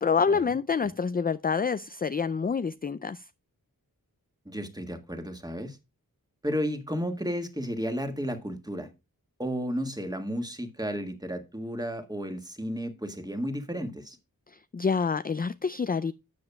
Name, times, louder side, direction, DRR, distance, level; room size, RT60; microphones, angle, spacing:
voice 1, 0.0-3.2 14.5-16.1, left 5 dB, 25° left, 0.3 m, -27 dB
voice 2, 4.4-5.8 6.4-8.9 9.4-14.2, equal, 10° right, 1.7 m, -33 dB
12.5 x 7.8 x 2.2 m
wide cardioid pair, 90°, 36 cm